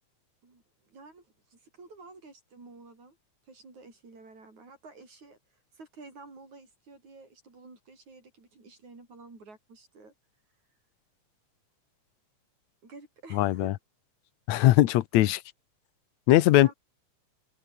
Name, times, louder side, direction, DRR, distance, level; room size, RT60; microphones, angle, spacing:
voice 1, 0.4-3.2 3.4-5.4 5.7-10.1 12.8-13.7 16.6-16.7, right 3 dB, 75° right, 9.2 m, -51 dB
voice 2, 13.3-13.7 14.5-15.4 16.3-16.7, left 15 dB, 75° left, 2.0 m, -20 dB
omnidirectional pair, 3.4 m